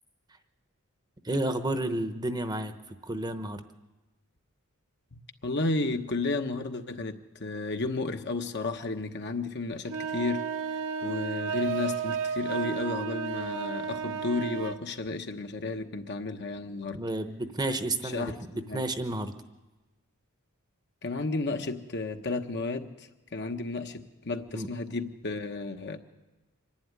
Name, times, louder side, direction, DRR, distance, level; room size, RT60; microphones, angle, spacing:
voice 1, 1.2-2.7 3.0-3.6 16.9-19.3 24.5-24.7, right 1 dB, 20° right, 8 dB, 0.9 m, -31 dB
voice 2, 5.1-10.5 11.0-17.0 18.0-18.4 18.7-18.8 21.0-26.0, left 3 dB, 50° left, 6 dB, 1.2 m, -33 dB
sound 1, 9.8-14.8, right 6 dB, 60° right, 1.0 m, -33 dB
25.0 x 11.5 x 9.7 m, 1.1 s
head